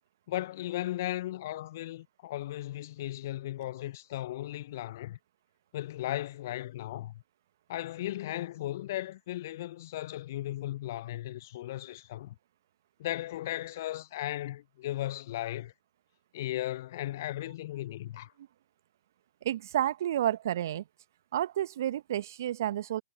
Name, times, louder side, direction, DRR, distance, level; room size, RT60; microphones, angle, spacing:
voice 1, 0.3-5.2 5.7-7.1 7.7-12.3 13.0-15.7 16.3-18.3, left 14 dB, 50° left, 0.6 m, -36 dB
voice 2, 19.4-20.8 21.3-23.0, right 12 dB, 55° right, 1.3 m, -30 dB
figure-of-eight pair, 115°, 2 cm